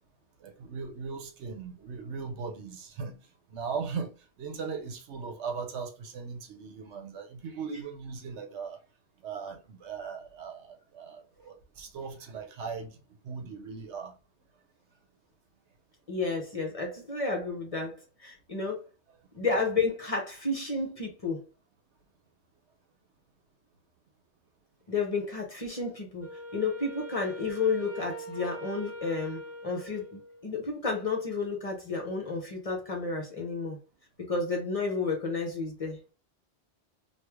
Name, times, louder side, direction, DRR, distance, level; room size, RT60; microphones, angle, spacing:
voice 1, 0.4-3.1 3.5-4.1 4.4-8.8 9.2-12.9 13.2-14.1, right 5 dB, 80° right, 1.0 m, -38 dB
voice 2, 16.1-18.9 19.3-21.4 24.9-33.8 34.2-36.0, left 4 dB, 35° left, 0.7 m, -31 dB
Wind instrument woodwind instrument, 26.2-30.6, equal, 15° right, 0.7 m, -42 dB
3.1 x 2.4 x 3.4 m
omnidirectional pair, 1.2 m